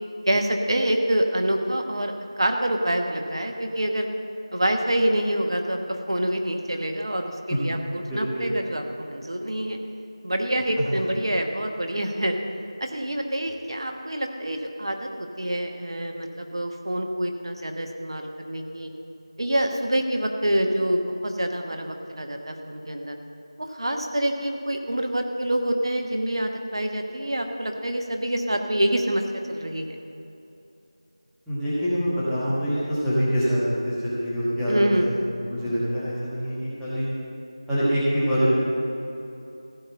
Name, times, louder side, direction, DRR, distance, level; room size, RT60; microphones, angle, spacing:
voice 1, 0.3-4.1 4.5-9.8 10.2-12.3 12.8-18.9 19.4-23.2 23.6-29.2 29.5-30.0 34.7-35.1, right 1 dB, 60° right, 3 dB, 1.1 m, -26 dB
voice 2, 8.1-8.4 31.5-35.1 35.5-37.1 37.7-38.7, equal, ahead, -16 dB, 1.3 m, -25 dB
15.5 x 5.4 x 8.0 m, 2.9 s
figure-of-eight pair, 170°, 3 cm